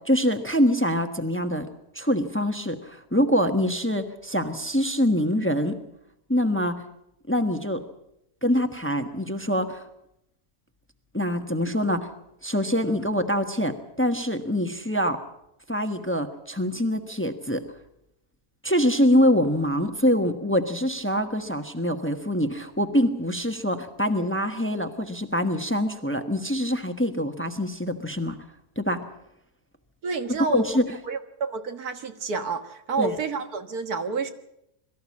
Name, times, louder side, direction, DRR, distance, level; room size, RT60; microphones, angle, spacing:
voice 1, 0.1-1.7 1.9-5.8 6.3-6.7 7.3-7.8 8.4-9.8 11.1-12.1 12.4-15.2 15.7-17.6 18.6-28.4 28.8-29.0 30.3-30.8 33.0-33.1, equal, 10° left, 7 dB, 1.2 m, -24 dB
voice 2, 30.0-30.7 31.0-34.3, right 4 dB, 85° right, 7 dB, 2.1 m, -29 dB
22.5 x 14.0 x 8.6 m, 0.82 s
omnidirectional pair, 1.6 m